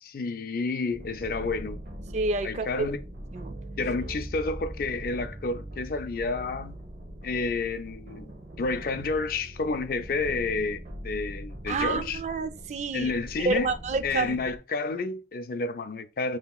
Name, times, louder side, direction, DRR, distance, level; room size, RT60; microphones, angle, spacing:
voice 1, 0.0-1.8 2.4-3.0 3.8-6.8 7.2-8.3 8.6-12.2 12.9-13.7 14.0-16.4, left 3 dB, 55° left, 0.4 m, -30 dB
sound 1, 0.9-14.6, equal, 65° right, 1.0 m, -41 dB
voice 2, 2.1-2.7 3.3-3.5 11.7-13.1 13.4-14.4, right 3 dB, 40° right, 0.4 m, -28 dB
5.4 x 2.8 x 2.3 m
head